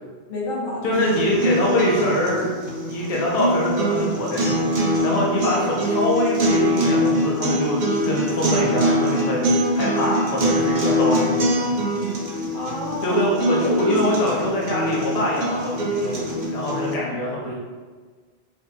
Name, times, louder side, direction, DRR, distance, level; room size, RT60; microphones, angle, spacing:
voice 1, 0.3-1.1 12.5-13.2 13.6-14.0 16.8-17.1, left 1 dB, 60° left, -4 dB, 1.0 m, -28 dB
voice 2, 0.8-2.5 2.8-4.6 5.0-9.4 9.7-11.8 13.0-17.5, left 1 dB, 40° left, -4 dB, 0.7 m, -24 dB
sound 1, 0.9-16.9, equal, 50° right, 0.8 m, -23 dB
4.4 x 2.8 x 2.7 m, 1.5 s
omnidirectional pair, 1.1 m